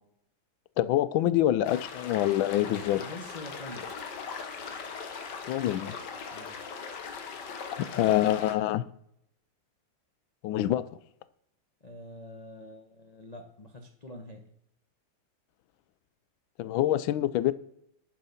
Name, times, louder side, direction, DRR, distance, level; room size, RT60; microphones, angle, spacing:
voice 1, 0.8-3.0 5.5-6.0 7.9-8.8 10.4-10.8 16.6-17.5, left 13 dB, 80° left, 1.3 m, -25 dB
sound 1, 1.6-8.5, left 5 dB, 60° left, 1.6 m, -40 dB
voice 2, 2.9-3.9 6.3-6.6 11.8-14.4, left 1 dB, 30° left, 0.7 m, -45 dB
10.5 x 5.6 x 5.6 m
omnidirectional pair, 2.2 m